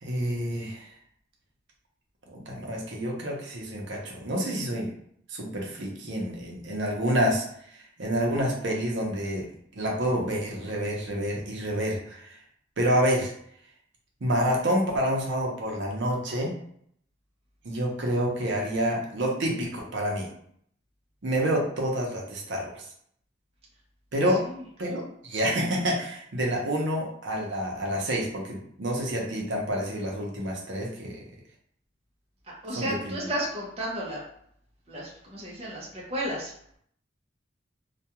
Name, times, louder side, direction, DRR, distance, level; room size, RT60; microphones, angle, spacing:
voice 1, 0.0-0.9 2.3-4.9 5.3-7.4 8.0-9.4 9.7-12.4 12.8-13.3 14.2-16.5 17.6-20.3 21.2-22.8 24.1-24.4 24.8-31.2 32.8-33.1, equal, 70° right, -1 dB, 0.6 m, -28 dB
voice 2, 32.5-34.2 34.9-36.5, right 1 dB, 30° right, -4 dB, 0.6 m, -33 dB
2.3 x 2.3 x 2.8 m, 0.66 s
head